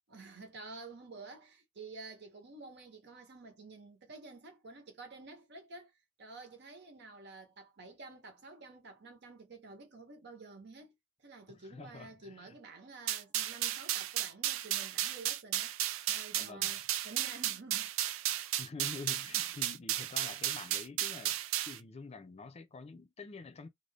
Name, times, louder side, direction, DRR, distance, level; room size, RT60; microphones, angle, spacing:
voice 1, 0.1-5.9 6.2-15.7 16.1-17.9, right 3 dB, 60° right, 0.8 m, -50 dB
voice 2, 11.5-12.6 16.3-16.7 18.6-21.4 21.6-23.7, left 4 dB, 30° left, 0.5 m, -47 dB
sound 1, 13.1-21.8, right 12 dB, 80° right, 0.4 m, -34 dB
2.6 x 2.2 x 3.2 m
head